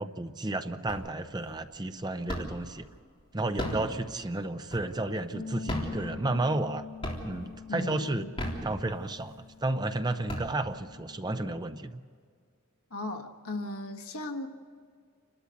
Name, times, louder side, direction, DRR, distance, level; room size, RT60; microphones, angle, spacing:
voice 1, 0.0-2.9 3.3-6.8 7.2-8.2 8.6-9.3 9.6-12.0, right 2 dB, 20° right, 9 dB, 0.6 m, -32 dB
sound 1, 0.9-1.4 1.7-2.7 3.4-5.2 5.6-6.7 7.0-7.6 8.2-9.2 9.7-9.8 10.1-11.0, equal, 25° left, 3.6 m, -36 dB
sound 2, 5.3-11.6, left 5 dB, 55° left, 1.0 m, -45 dB
voice 2, 7.7-8.3 12.9-14.5, left 2 dB, 75° left, 2 dB, 1.5 m, -36 dB
29.0 x 13.0 x 8.2 m, 2.1 s
head